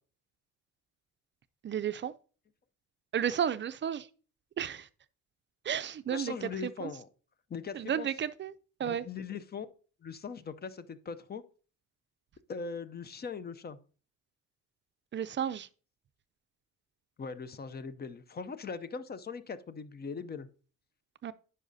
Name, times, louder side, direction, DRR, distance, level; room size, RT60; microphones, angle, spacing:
voice 1, 1.6-2.1 3.1-4.1 4.6-4.9 5.6-6.9 7.7-8.5 8.8-9.1 15.1-15.7 21.2-21.3, right 9 dB, 40° right, 0.4 m, -33 dB
voice 2, 6.1-7.1 7.5-8.1 8.8-9.7 10.0-11.4 12.5-13.8 17.2-20.5, left 5 dB, 35° left, 0.6 m, -40 dB
9.8 x 5.5 x 2.7 m
cardioid pair, 90°, 30 cm